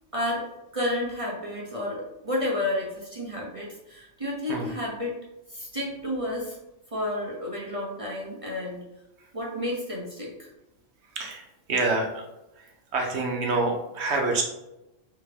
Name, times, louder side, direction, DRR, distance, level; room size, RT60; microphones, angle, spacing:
voice 1, 0.1-0.5 0.7-5.2 5.5-6.6 6.9-8.8 9.3-10.5, left 1 dB, 30° right, -4 dB, 0.8 m, -31 dB
voice 2, 11.1-12.2 12.6-12.7 12.9-14.4, right 3 dB, 60° right, 1 dB, 1.1 m, -27 dB
3.5 x 3.5 x 3.3 m, 0.94 s
omnidirectional pair, 1.4 m